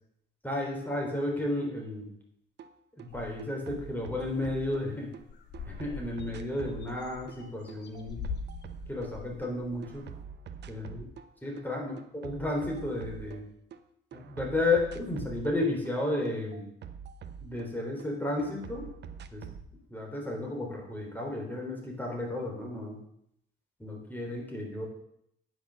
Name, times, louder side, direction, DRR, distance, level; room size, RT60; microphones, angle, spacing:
voice 1, 0.4-2.1 3.0-5.1 5.7-8.2 8.9-10.1 10.7-11.1 11.4-11.9 12.2-13.4 14.1-16.6 17.4-18.9 19.3-19.4 19.9-23.0 23.8-24.9, left 2 dB, 10° left, 0 dB, 3.8 m, -32 dB
sound 1, 2.6-2.7 3.0-5.2 5.5-9.5 9.8-11.3 11.6-13.8 14.1-18.1 18.4-19.7, right 7 dB, 60° right, 0.8 m, -45 dB
sound 2, 3.1-3.8 4.3-4.4 4.6-4.9 5.2-10.2, left 6 dB, 60° left, 1.4 m, -43 dB
9.5 x 6.3 x 6.5 m, 0.72 s
cardioid pair, 90°, 20 cm